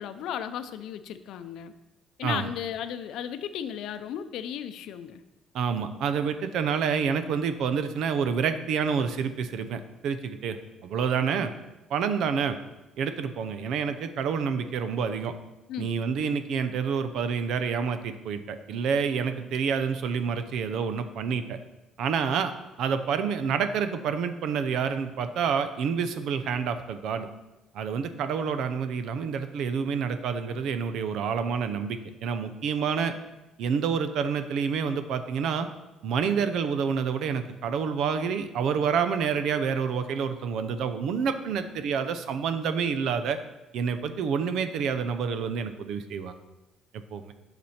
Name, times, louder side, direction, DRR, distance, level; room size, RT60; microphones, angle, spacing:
voice 1, 0.0-1.7 2.2-5.2 15.7-15.9, left 9 dB, 70° left, 11 dB, 0.6 m, -35 dB
voice 2, 5.5-11.5 11.9-12.6 13.0-15.3 15.8-21.6 22.0-22.5 22.8-27.3 27.7-33.1 33.6-35.7 36.0-43.4 43.7-46.3 46.9-47.3, right 6 dB, 65° right, 10 dB, 0.8 m, -28 dB
11.5 x 6.1 x 4.4 m, 1.0 s
cardioid pair, 140°, 0 cm